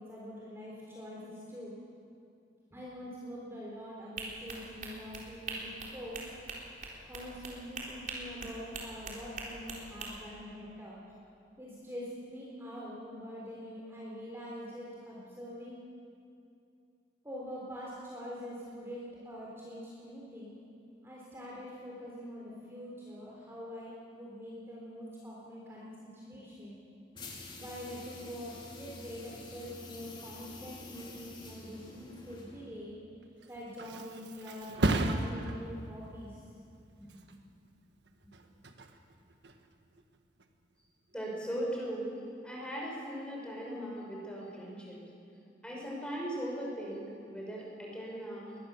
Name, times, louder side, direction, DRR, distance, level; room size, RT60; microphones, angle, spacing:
voice 1, 0.0-1.8 2.7-6.3 7.0-11.1 11.6-15.8 17.2-20.5 21.0-26.8 27.5-33.0 33.5-36.4 36.9-37.2, equal, 15° right, -5 dB, 3.7 m, -44 dB
sound 1, 4.2-10.1, right 3 dB, 45° right, 3.8 m, -42 dB
sound 2, 27.1-32.8, left 2 dB, 25° left, 3.0 m, -48 dB
Thump thud, 33.2-40.7 41.1-41.5, right 1 dB, 80° right, 1.5 m, -37 dB
voice 2, 41.1-42.1 42.4-45.0 45.6-48.4, right 1 dB, 5° left, -3 dB, 5.7 m, -38 dB
21.5 x 19.5 x 7.1 m, 2.5 s
head